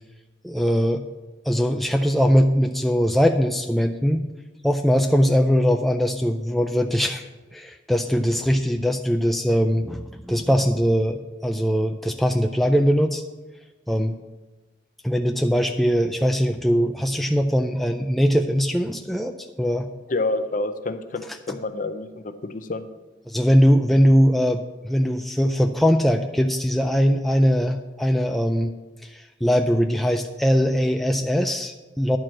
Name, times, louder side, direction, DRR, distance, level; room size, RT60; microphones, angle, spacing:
voice 1, 0.4-1.0 1.4-4.2 4.6-7.3 7.5-13.2 13.9-14.2 15.0-19.9 23.3-28.7 29.0-32.2, equal, ahead, 4 dB, 0.3 m, -21 dB
voice 2, 20.1-22.9, left 2 dB, 45° left, 10 dB, 0.6 m, -28 dB
10.5 x 4.7 x 7.4 m, 1.2 s
head